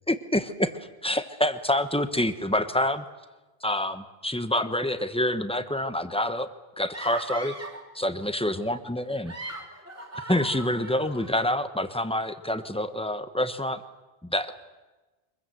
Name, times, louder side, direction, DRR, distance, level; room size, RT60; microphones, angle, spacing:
voice 1, 0.1-3.0 3.6-6.5 6.8-7.5 7.9-9.3 10.3-13.8 14.2-14.5, left 1 dB, 5° left, 10 dB, 1.0 m, -27 dB
sound 1, 6.9-7.9 9.1-11.5, right 1 dB, 15° right, 3.3 m, -39 dB
24.0 x 21.0 x 7.9 m, 1.2 s
omnidirectional pair, 1.0 m